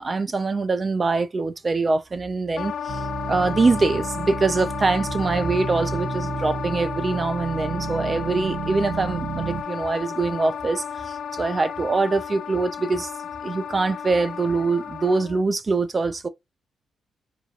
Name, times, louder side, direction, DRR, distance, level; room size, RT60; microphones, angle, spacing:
voice 1, 0.0-13.1 13.4-16.3, right 3 dB, 30° right, 0.6 m, -24 dB
Wind instrument woodwind instrument, 2.6-15.5, left 8 dB, 75° left, 0.3 m, -33 dB
sound 1, 2.9-9.6, right 5 dB, 70° right, 0.8 m, -32 dB
4.8 x 2.8 x 2.5 m
cardioid pair, 105°, 0 cm